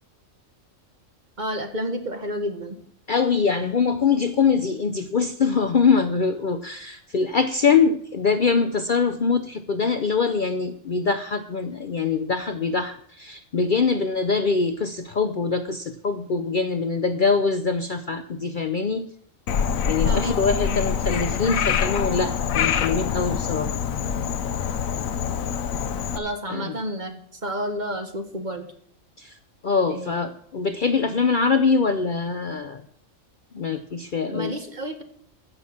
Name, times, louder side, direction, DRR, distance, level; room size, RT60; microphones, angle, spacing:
voice 1, 1.4-2.8 20.0-20.4 20.6-20.7 26.1-28.7 29.9-30.3 34.3-35.0, equal, 35° right, 6 dB, 1.6 m, -30 dB
voice 2, 3.1-19.1 19.8-23.7 26.5-26.8 29.2-29.4 29.6-32.8 33.5-34.5, left 5 dB, 50° left, 9 dB, 0.7 m, -23 dB
Frog, 19.5-26.2, left 7 dB, 85° left, 1.2 m, -25 dB
15.5 x 6.4 x 7.2 m, 0.62 s
omnidirectional pair, 1.4 m